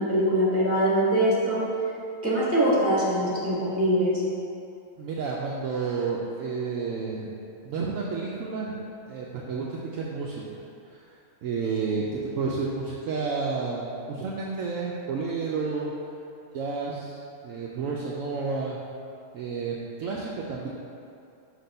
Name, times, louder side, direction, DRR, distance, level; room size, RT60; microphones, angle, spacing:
voice 1, 0.0-1.6 2.2-4.2, right 1 dB, 10° right, -8 dB, 1.3 m, -23 dB
voice 2, 5.0-7.3 7.6-8.8 9.1-10.6 10.9-11.0 11.4-15.9 16.5-18.8 19.3-20.7, right 4 dB, 70° right, -4 dB, 0.9 m, -31 dB
5.8 x 3.0 x 5.3 m, 2.5 s
omnidirectional pair, 1.6 m